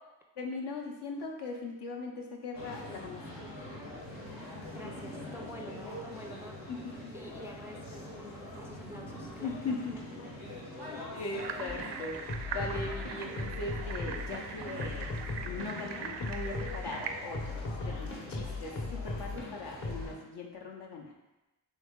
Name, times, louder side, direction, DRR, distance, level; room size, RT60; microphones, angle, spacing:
voice 1, 0.4-3.5 6.7-7.1 9.4-9.9 10.9-15.1 15.4-21.1, left 3 dB, 65° left, 0 dB, 0.8 m, -40 dB
sound 1, 2.5-20.1, left 1 dB, 80° left, 1.2 m, -45 dB
voice 2, 4.7-6.6 7.1-10.5, equal, 5° right, 1 dB, 0.4 m, -49 dB
sound 2, 11.4-17.1, right 6 dB, 70° right, 0.5 m, -41 dB
sound 3, 11.7-11.9 12.3-14.4 14.8-17.0 17.3-19.5 19.8-20.1, left 3 dB, 40° left, 0.9 m, -37 dB
3.1 x 3.0 x 3.6 m, 1.0 s
supercardioid pair, 40°, 44 cm